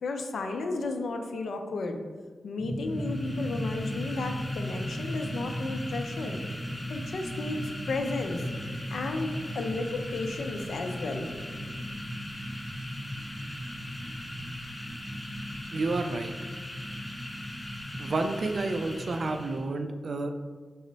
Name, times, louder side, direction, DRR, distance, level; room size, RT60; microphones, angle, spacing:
voice 1, 0.0-2.0 2.4-6.4 6.9-7.6 7.9-8.4 8.9-11.3, left 3 dB, 85° left, 5 dB, 0.4 m, -33 dB
sound 1, 2.6-19.6, equal, 20° right, 0.7 m, -37 dB
sound 2, 2.8-19.7, left 1 dB, 20° left, 0.5 m, -42 dB
voice 2, 15.7-16.3 18.0-20.3, right 3 dB, 55° right, 6 dB, 0.3 m, -30 dB
5.3 x 2.1 x 3.9 m, 1.4 s
wide cardioid pair, 120°, 0 cm